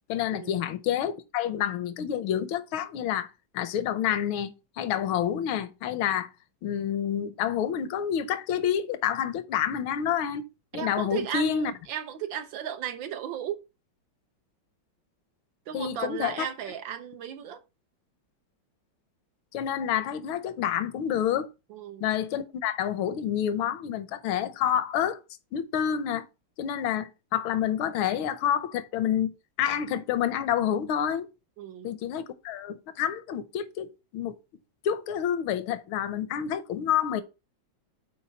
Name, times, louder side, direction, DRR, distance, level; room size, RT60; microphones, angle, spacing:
voice 1, 0.1-3.3 3.5-4.5 4.8-6.3 6.6-10.5 10.7-11.7 15.7-16.5 19.5-21.5 22.0-25.2 25.5-26.3 26.6-29.3 29.6-31.3 31.8-34.4 34.8-37.2, left 9 dB, 80° left, 1.6 m, -28 dB
voice 2, 10.7-13.6 15.7-17.6 21.7-22.0 31.6-32.0, right 9 dB, 75° right, 1.4 m, -35 dB
7.1 x 4.5 x 4.4 m
omnidirectional pair, 2.2 m